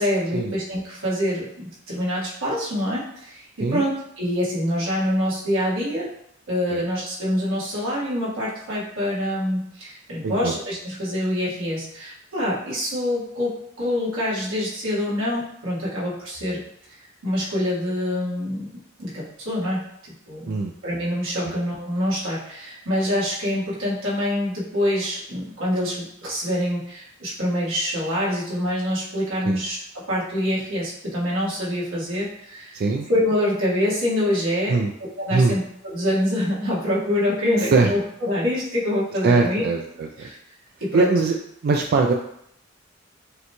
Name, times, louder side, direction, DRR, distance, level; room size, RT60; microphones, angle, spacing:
voice 1, 0.0-6.1 6.5-16.6 17.2-18.7 19.0-19.9 20.3-32.8 33.1-34.8 35.2-39.6 40.2-40.4 40.8-41.1, left 1 dB, 85° right, -7 dB, 1.5 m, -25 dB
voice 2, 10.2-10.5 20.5-20.7 29.4-29.6 32.7-33.1 34.7-34.9 35.3-35.5 37.6-37.9 39.2-40.3 40.9-41.3 41.6-42.1, right 4 dB, 50° right, 3 dB, 0.3 m, -21 dB
6.5 x 2.2 x 3.0 m, 0.75 s
head